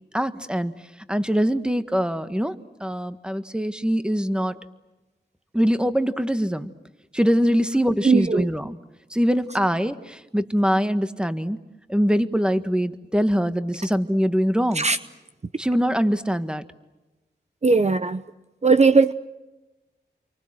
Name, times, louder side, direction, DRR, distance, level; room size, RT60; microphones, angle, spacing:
voice 1, 0.1-0.7 1.1-2.5 2.8-4.6 5.5-6.7 7.1-8.8 9.1-11.6 11.9-14.9 15.6-16.6, equal, 5° right, 10 dB, 1.6 m, -23 dB
voice 2, 8.0-8.5 14.7-15.0 17.6-18.2 18.6-19.1, right 4 dB, 40° right, 11 dB, 0.8 m, -18 dB
29.5 x 24.5 x 7.7 m, 1.1 s
wide cardioid pair, 65°, 18 cm